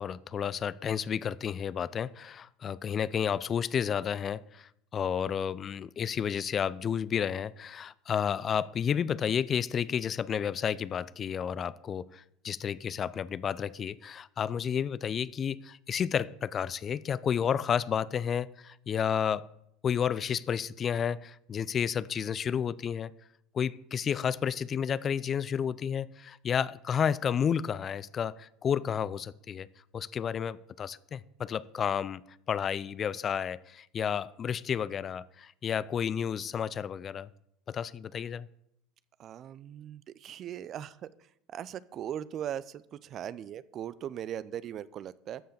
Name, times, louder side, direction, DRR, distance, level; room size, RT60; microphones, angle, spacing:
voice 1, 0.0-19.5 19.8-23.1 23.5-29.7 29.9-32.2 32.5-37.3 37.7-38.5, left 8 dB, 35° left, 19 dB, 0.4 m, -31 dB
voice 2, 39.2-41.1 41.5-45.4, right 10 dB, 45° right, 18 dB, 0.5 m, -39 dB
13.5 x 5.7 x 6.6 m, 0.76 s
hypercardioid pair, 75°, 0 cm